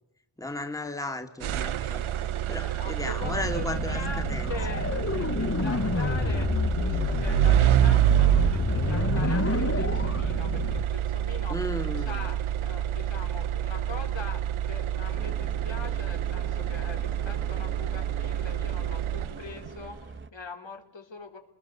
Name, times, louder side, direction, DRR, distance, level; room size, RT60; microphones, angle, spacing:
voice 1, 0.4-2.0 2.5-4.0 4.3-4.5 11.5-12.2, left 1 dB, 5° left, 5 dB, 2.3 m, -34 dB
sound 1, 1.4-19.7, right 11 dB, 75° right, 0.8 m, -27 dB
voice 2, 2.6-11.6 12.0-21.4, left 4 dB, 60° left, 3 dB, 4.6 m, -42 dB
sound 2, 3.2-10.8, left 5 dB, 30° left, 1.0 m, -29 dB
sound 3, 15.1-20.3, right 4 dB, 25° right, 1.3 m, -45 dB
29.0 x 20.5 x 6.9 m, 0.81 s
cardioid pair, 70°, 49 cm